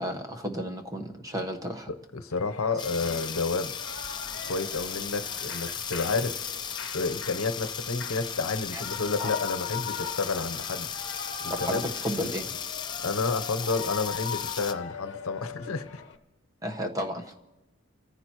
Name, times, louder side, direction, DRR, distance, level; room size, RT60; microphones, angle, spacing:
voice 1, 0.0-1.9 2.7-2.8 8.7-8.8 9.2-9.3 11.5-12.5 16.6-17.3, equal, 15° right, 4 dB, 1.1 m, -33 dB
voice 2, 2.2-3.7 4.5-6.4 6.9-10.9 11.4-11.8 13.0-16.0, left 4 dB, 80° left, 10 dB, 0.8 m, -30 dB
Shout / Cheering, 2.3-16.2, left 7 dB, 55° left, 1.0 m, -41 dB
sound 1, 2.8-14.7, left 7 dB, 20° left, 0.5 m, -36 dB
29.5 x 14.5 x 3.0 m, 1.0 s
head